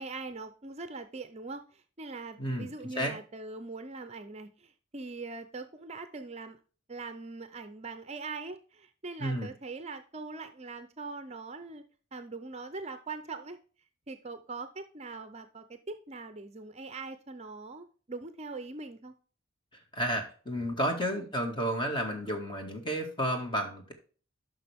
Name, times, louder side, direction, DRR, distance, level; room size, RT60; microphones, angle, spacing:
voice 1, 0.0-6.6 6.9-11.8 12.1-13.6 14.1-19.1 21.2-21.3, right 3 dB, 30° right, 9 dB, 0.6 m, -42 dB
voice 2, 2.4-2.7 3.0-3.1 9.2-9.5 19.9-23.9, equal, 25° left, 3 dB, 2.1 m, -31 dB
11.0 x 6.0 x 3.5 m, 0.39 s
head